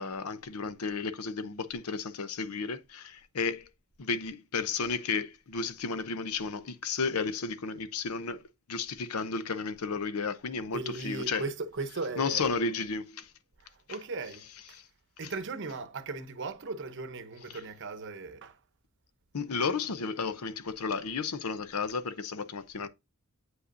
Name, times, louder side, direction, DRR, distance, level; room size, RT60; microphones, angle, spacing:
voice 1, 0.0-3.7 4.0-8.4 8.7-11.4 12.2-13.3 14.7-14.8 19.3-22.9, left 4 dB, 85° left, 0.7 m, -33 dB
voice 2, 10.7-12.5 13.6-14.8 15.2-18.6, right 3 dB, 55° right, 0.8 m, -37 dB
8.1 x 5.2 x 2.6 m
head